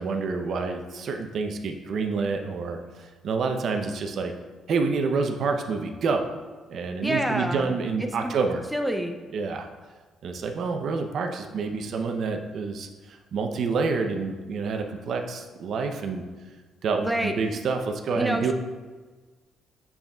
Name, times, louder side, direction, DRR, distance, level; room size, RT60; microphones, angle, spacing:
voice 1, 0.0-4.3 4.7-6.3 6.7-8.6 9.3-9.7 10.2-16.2 16.8-18.5, right 4 dB, 60° right, 4 dB, 0.6 m, -28 dB
voice 2, 7.0-7.8 8.2-8.3 8.7-9.2 17.0-17.3 18.2-18.5, right 1 dB, ahead, 4 dB, 0.5 m, -27 dB
7.8 x 7.0 x 2.3 m, 1.4 s
cardioid pair, 120°, 0 cm